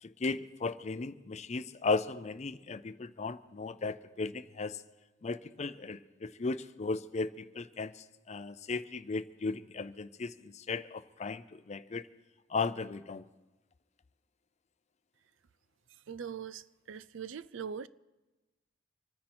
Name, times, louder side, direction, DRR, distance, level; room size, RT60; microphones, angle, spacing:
voice 1, 0.0-4.8 5.2-12.1 12.5-13.2, left 4 dB, 35° left, 0.5 m, -36 dB
voice 2, 16.1-17.9, right 7 dB, 80° right, 0.5 m, -41 dB
25.5 x 9.8 x 4.4 m
head